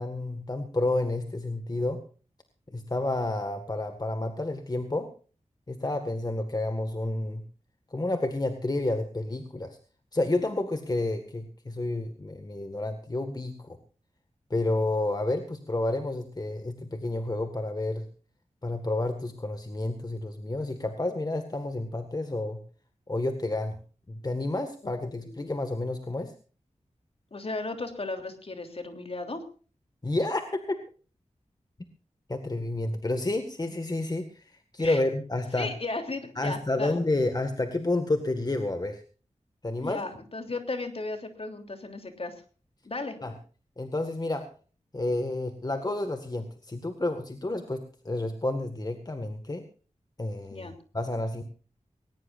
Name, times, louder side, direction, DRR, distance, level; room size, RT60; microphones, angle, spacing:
voice 1, 0.0-2.0 2.7-5.1 5.7-7.4 7.9-9.8 10.1-13.8 14.5-18.1 18.6-22.6 23.1-23.8 24.1-26.3 30.0-30.8 32.3-35.7 36.4-39.0 39.6-40.0 43.2-43.3 43.8-44.5 44.9-49.6 50.2-51.4, left 2 dB, 30° left, 7 dB, 1.8 m, -30 dB
voice 2, 24.8-25.4 27.3-29.4 34.8-35.0 35.5-37.0 39.8-42.3 42.8-43.2 50.5-50.7, left 3 dB, 50° left, 6 dB, 3.2 m, -35 dB
20.0 x 19.0 x 2.6 m, 0.39 s
wide cardioid pair, 85°, 13 cm